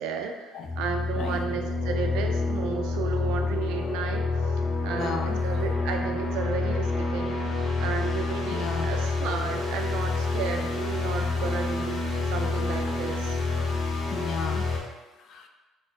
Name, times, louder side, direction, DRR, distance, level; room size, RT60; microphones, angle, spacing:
voice 1, 0.0-7.4 7.8-13.4, right 6 dB, 85° right, 4 dB, 0.4 m, -34 dB
sound 1, 0.6-14.8, left 3 dB, 35° left, 0.8 m, -28 dB
voice 2, 5.0-5.4 8.5-8.9 14.1-14.7 15.2-15.5, left 6 dB, 50° left, 4 dB, 0.4 m, -34 dB
4.3 x 2.4 x 2.8 m, 1.1 s
cardioid pair, 140°, 0 cm